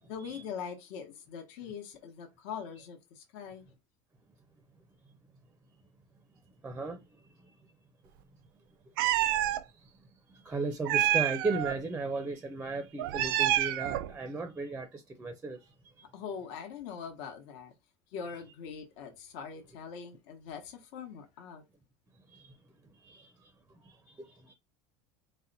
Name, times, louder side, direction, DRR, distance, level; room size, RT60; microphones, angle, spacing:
voice 1, 0.0-3.7 16.0-17.7 18.1-21.6, left 6 dB, 65° left, 1.0 m, -42 dB
voice 2, 6.6-7.0 7.4-7.5 9.7-9.9 10.3-16.1 22.3-22.5 23.0-23.5 23.8-24.5, right 3 dB, 10° right, 0.5 m, -36 dB
Meow, 9.0-9.6 10.8-11.8 13.0-14.1, right 14 dB, 85° right, 0.4 m, -28 dB
4.0 x 2.1 x 3.9 m
cardioid pair, 150°, 12 cm